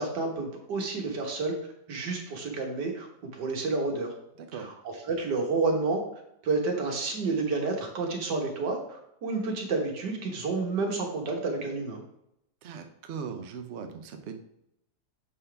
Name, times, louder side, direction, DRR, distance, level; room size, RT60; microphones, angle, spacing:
voice 1, 0.0-1.5 1.9-3.1 3.3-4.1 4.5-6.0 6.4-12.0, right 3 dB, 60° right, 2 dB, 1.8 m, -30 dB
voice 2, 12.6-14.4, right 6 dB, 75° right, 5 dB, 0.6 m, -39 dB
6.8 x 5.6 x 3.4 m, 0.78 s
omnidirectional pair, 2.1 m